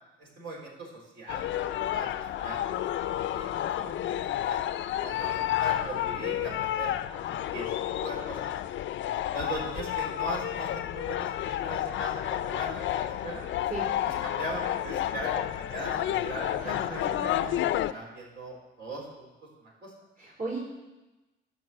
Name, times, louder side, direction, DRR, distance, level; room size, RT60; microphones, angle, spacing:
voice 1, 0.2-2.1 2.4-2.6 2.9-4.6 5.0-7.7 8.0-8.5 9.3-13.4 14.0-17.5 17.9-19.3 19.6-19.9, right 2 dB, 70° right, -3 dB, 4.0 m, -40 dB
sound 1, 1.3-17.9, left 12 dB, 75° left, 0.5 m, -31 dB
voice 2, 16.6-17.6 20.2-20.6, right 3 dB, 50° right, -3 dB, 3.6 m, -37 dB
11.0 x 5.9 x 7.6 m, 1.1 s
cardioid pair, 90°, 20 cm